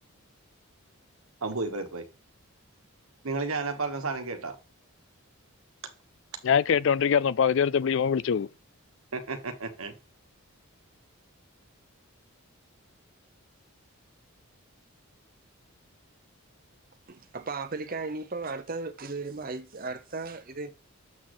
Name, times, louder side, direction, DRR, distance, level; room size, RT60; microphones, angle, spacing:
voice 1, 1.4-2.0 3.2-4.6 9.1-9.9, right 3 dB, 70° right, 1.3 m, -32 dB
voice 2, 6.4-8.5, left 7 dB, 55° left, 0.3 m, -23 dB
voice 3, 17.1-20.7, right 3 dB, 40° right, 0.8 m, -36 dB
7.4 x 6.3 x 3.1 m
head